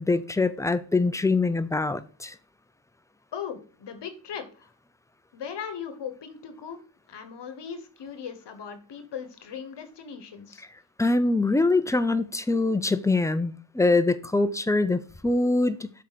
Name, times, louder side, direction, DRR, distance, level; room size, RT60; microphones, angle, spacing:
voice 1, 0.0-2.3 11.0-15.9, left 3 dB, 5° left, 0.5 m, -24 dB
voice 2, 3.3-4.7 5.3-6.8 7.1-10.6, left 7 dB, 65° left, 1.1 m, -38 dB
7.3 x 4.8 x 4.0 m
cardioid pair, 90°, 46 cm